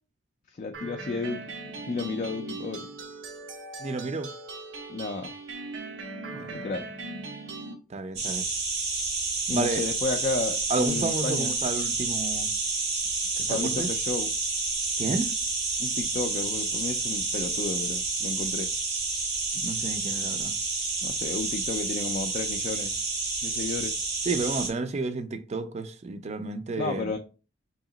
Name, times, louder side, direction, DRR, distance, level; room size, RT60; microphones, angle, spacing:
voice 1, 0.6-1.4 1.9-2.8 4.9-5.3 6.5-6.8 9.5-11.5 13.5-14.3 15.8-18.7 21.0-22.9 23.4-23.9 26.8-27.2, left 3 dB, 40° left, 0.3 m, -32 dB
sound 1, 0.7-7.7, right 3 dB, 85° right, 0.7 m, -39 dB
voice 2, 3.8-4.3 6.3-6.7 7.9-8.5 9.5-9.8 10.7-12.5 13.4-13.9 15.0-15.3 19.6-20.5 24.2-27.1, right 3 dB, 35° right, 0.4 m, -31 dB
sound 2, 8.2-24.7, right 3 dB, 60° right, 1.0 m, -29 dB
2.9 x 2.8 x 3.8 m
head